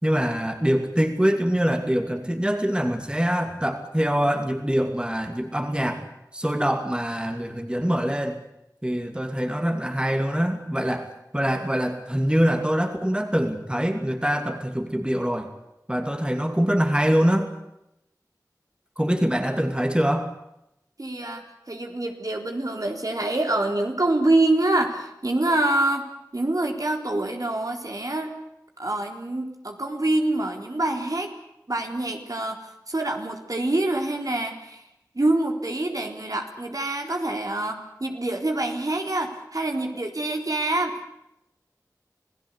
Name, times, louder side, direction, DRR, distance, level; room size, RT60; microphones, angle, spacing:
voice 1, 0.0-6.0 6.3-8.4 8.8-15.5 15.9-17.5 19.0-20.3, equal, 15° right, 6 dB, 2.6 m, -24 dB
voice 2, 21.0-28.4 28.8-31.3 31.7-34.8 35.1-41.1, right 2 dB, 60° right, 3 dB, 4.0 m, -26 dB
27.5 x 17.5 x 8.4 m, 0.86 s
wide cardioid pair, 40°, 7 cm